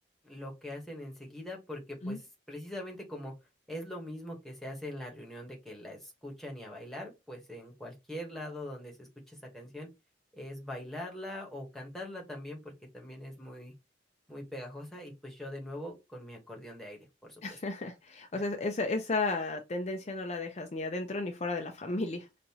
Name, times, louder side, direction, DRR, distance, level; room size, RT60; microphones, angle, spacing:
voice 1, 0.2-3.3 3.7-9.9 10.3-13.7 14.3-17.6 18.3-18.4, left 1 dB, ahead, 1.2 m, -42 dB
voice 2, 17.4-22.3, left 3 dB, 35° left, 0.5 m, -33 dB
5.3 x 2.5 x 2.9 m
head